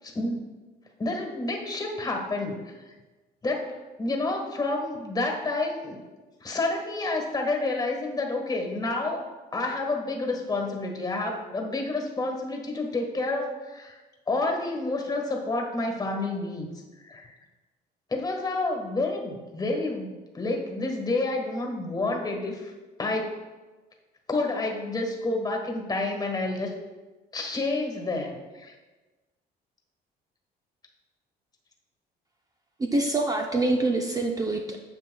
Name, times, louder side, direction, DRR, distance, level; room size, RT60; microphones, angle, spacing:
voice 1, 0.0-0.5 1.0-2.6 3.4-6.0 6.4-14.0 14.3-16.7 17.0-17.3 18.1-22.7 23.0-23.4 24.3-26.7 27.3-28.7, left 2 dB, 25° left, 2 dB, 1.5 m, -29 dB
voice 2, 32.9-34.8, right 2 dB, 20° right, 2 dB, 0.6 m, -25 dB
9.6 x 7.1 x 2.3 m, 1.2 s
cardioid pair, 110°, 17 cm